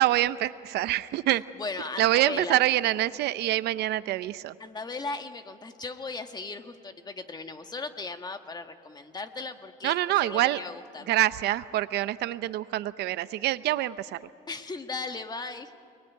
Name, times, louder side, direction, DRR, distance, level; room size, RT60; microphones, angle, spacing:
voice 1, 0.0-1.4 2.0-4.5 9.8-10.6 11.1-14.2, right 15 dB, 75° right, 14 dB, 0.7 m, -25 dB
voice 2, 1.6-2.6 4.6-11.1 14.5-15.7, left 3 dB, 25° left, 7 dB, 1.6 m, -37 dB
29.0 x 20.5 x 9.3 m, 2.4 s
cardioid pair, 110°, 17 cm